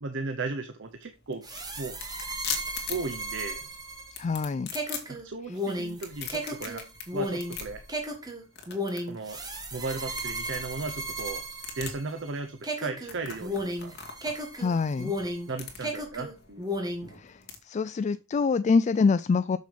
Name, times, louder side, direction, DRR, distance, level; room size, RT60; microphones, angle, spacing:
voice 1, 0.0-1.4 1.8-2.0 2.9-3.6 5.1-6.8 7.1-7.8 9.1-9.4 9.7-11.4 11.8-14.0 15.5-16.7, right 3 dB, 60° right, 8 dB, 0.8 m, -35 dB
sound 1, 0.8-17.6, left 6 dB, 50° left, 2.0 m, -42 dB
sound 2, 1.4-12.3 12.6-15.5 15.8-17.1, equal, 20° right, 1.7 m, -34 dB
voice 2, 4.2-4.7 14.6-15.1 17.2-17.4 17.7-19.6, left 4 dB, 35° left, 13 dB, 0.3 m, -25 dB
6.8 x 6.4 x 5.0 m, 0.31 s
head